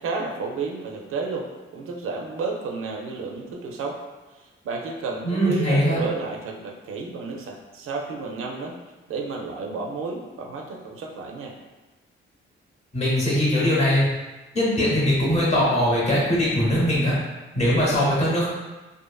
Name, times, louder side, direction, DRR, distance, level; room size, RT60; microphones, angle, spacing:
voice 1, 0.0-4.0 4.3-8.8 9.1-11.6, right 4 dB, 85° right, 1 dB, 0.4 m, -31 dB
voice 2, 5.2-6.0 12.9-14.1 14.5-17.1 17.5-18.5, equal, 30° left, -6 dB, 0.8 m, -21 dB
2.6 x 2.4 x 2.2 m, 1.1 s
wide cardioid pair, 180°, 21 cm